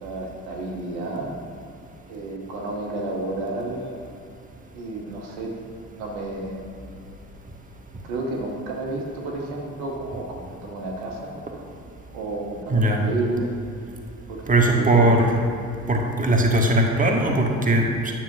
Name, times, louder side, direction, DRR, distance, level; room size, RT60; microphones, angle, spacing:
voice 1, 0.0-1.3 2.1-4.2 4.7-5.5 5.9-6.6 8.0-11.3 12.1-13.5 14.3-14.4 14.7-15.2, right 2 dB, 75° right, -1 dB, 1.0 m, -31 dB
voice 2, 12.7-13.0 14.5-15.3 15.9-18.1, right 1 dB, 20° right, 1 dB, 1.2 m, -19 dB
9.4 x 7.2 x 2.7 m, 2.6 s
figure-of-eight pair, 45°, 40 cm